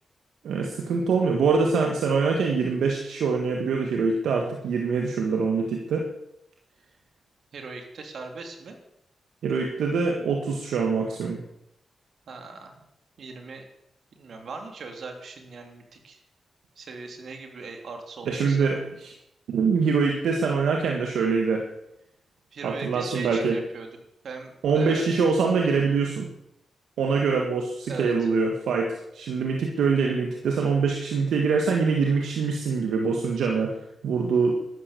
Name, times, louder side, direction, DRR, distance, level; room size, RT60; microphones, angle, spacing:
voice 1, 0.4-6.1 9.4-11.4 18.2-19.1 19.5-21.7 22.6-23.6 24.6-26.3 27.0-33.8 34.0-34.6, right 5 dB, 90° right, 2 dB, 1.7 m, -24 dB
voice 2, 7.5-8.8 12.3-12.8 13.2-13.6 14.1-16.2 16.8-18.8 22.5-23.9 24.2-25.1 27.9-28.3, right 4 dB, 70° right, 4 dB, 3.2 m, -39 dB
13.0 x 12.5 x 6.9 m, 0.80 s
cardioid pair, 60°, 0 cm